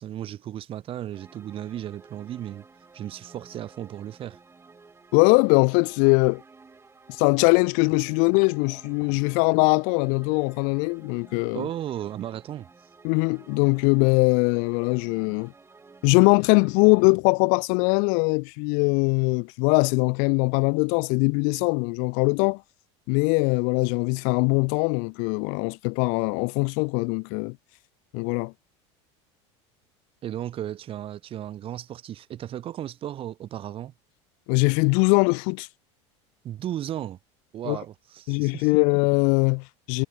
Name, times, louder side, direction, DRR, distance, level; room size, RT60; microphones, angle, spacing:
voice 1, 0.0-2.6 2.9-4.4 11.5-12.7 30.2-33.9 36.4-37.2 37.5-38.7, right 11 dB, 40° right, 0.8 m, -35 dB
sound 1, 1.1-17.1, right 4 dB, 15° right, 4.7 m, -53 dB
voice 2, 5.1-6.4 7.2-11.7 13.0-15.5 16.0-22.6 23.1-27.6 28.1-28.5 34.5-35.7 37.6-37.8 38.3-40.0, left 40 dB or more, 65° left, 0.6 m, -21 dB
supercardioid pair, 115°, 15 cm